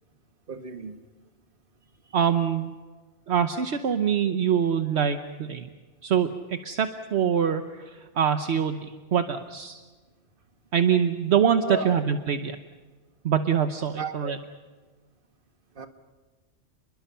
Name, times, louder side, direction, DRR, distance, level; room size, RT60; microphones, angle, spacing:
voice 1, 0.5-1.0 11.7-12.0 13.9-14.3 15.7-15.9, right 3 dB, 50° right, 7 dB, 1.7 m, -33 dB
voice 2, 2.1-2.7 3.3-5.7 6.0-9.8 10.7-12.6 13.2-14.4, right 8 dB, 70° right, 8 dB, 1.2 m, -24 dB
29.5 x 21.5 x 5.7 m, 1.4 s
omnidirectional pair, 1.2 m